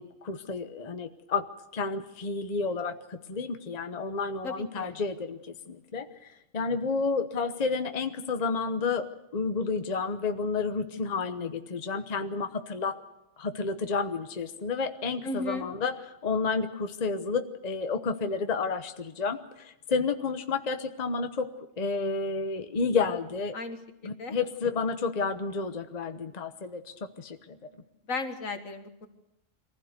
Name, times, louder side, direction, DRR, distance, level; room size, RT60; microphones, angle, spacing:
voice 1, 0.0-1.4 1.7-5.4 5.7-6.1 6.5-12.9 13.4-16.0 16.2-21.5 21.8-23.5 24.0-27.6, left 4 dB, 35° left, 8 dB, 1.1 m, -30 dB
voice 2, 4.4-5.0 15.2-15.7 23.5-24.4 28.1-29.1, left 3 dB, 80° left, 7 dB, 2.1 m, -35 dB
23.5 x 15.5 x 8.1 m, 0.86 s
omnidirectional pair, 1.4 m